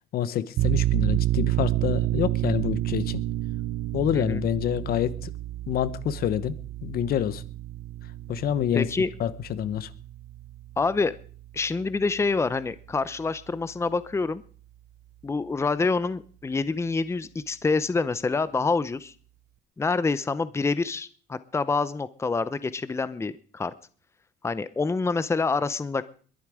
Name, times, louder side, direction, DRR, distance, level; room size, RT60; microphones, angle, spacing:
voice 1, 0.1-3.2 3.9-5.3 5.7-6.6 6.8-7.4 8.3-8.9 9.2-9.9, left 10 dB, 65° left, 16 dB, 1.1 m, -27 dB
sound 1, 0.6-11.9, right 14 dB, 80° right, 0.8 m, -29 dB
voice 2, 8.7-9.1 10.8-11.1 11.5-14.4 15.2-19.1 19.8-23.7 24.4-26.0, left 4 dB, 15° left, 15 dB, 0.7 m, -26 dB
22.0 x 11.0 x 5.0 m, 0.43 s
cardioid pair, 110°, 17 cm